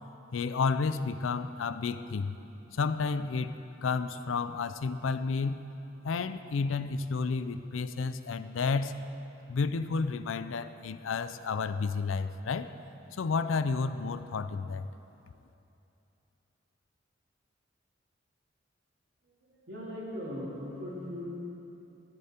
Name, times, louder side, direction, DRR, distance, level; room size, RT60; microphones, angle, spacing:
voice 1, 0.3-2.3 2.7-3.5 3.8-5.7 6.0-9.0 9.5-12.7 13.1-14.9, left 4 dB, 85° left, 12 dB, 0.5 m, -31 dB
voice 2, 19.2-21.3, equal, 60° right, -6 dB, 2.6 m, -39 dB
13.5 x 11.0 x 4.4 m, 2.9 s
head